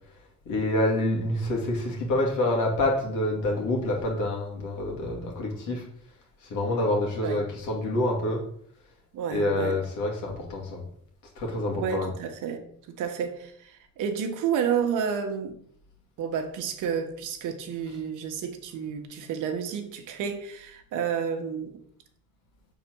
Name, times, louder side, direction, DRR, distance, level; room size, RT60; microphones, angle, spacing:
voice 1, 0.4-5.8 6.5-8.4 9.3-10.8 11.4-12.1, left 1 dB, 85° left, 2.2 m, -27 dB
voice 2, 9.1-9.8 11.7-12.6 12.9-15.6 16.2-21.8, right 7 dB, 90° right, 1.1 m, -30 dB
5.8 x 4.1 x 6.0 m
cardioid pair, 90°, 30 cm